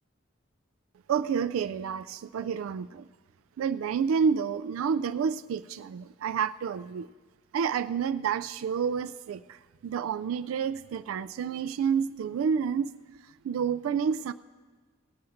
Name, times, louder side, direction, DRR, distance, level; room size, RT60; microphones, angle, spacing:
voice 1, 1.1-3.1 3.6-7.1 7.5-12.9 13.4-14.3, right 6 dB, 85° right, 13 dB, 0.3 m, -29 dB
18.0 x 7.7 x 5.7 m, 1.4 s
head